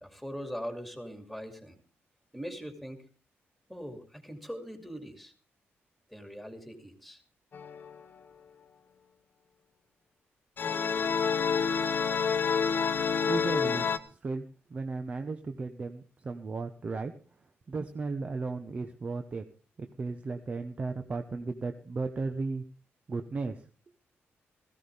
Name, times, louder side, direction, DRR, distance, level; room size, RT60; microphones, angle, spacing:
voice 1, 0.0-1.8 2.3-3.0 3.7-5.3 6.1-7.2, equal, ahead, 6 dB, 2.5 m, -41 dB
sound 1, 7.5-8.0 10.6-14.0, left 6 dB, 45° left, 1.0 m, -28 dB
voice 2, 13.3-17.1 17.7-19.4 19.8-22.6 23.1-23.6, right 3 dB, 30° right, 7 dB, 0.9 m, -35 dB
17.0 x 15.5 x 3.5 m, 0.38 s
wide cardioid pair, 150°, 5 cm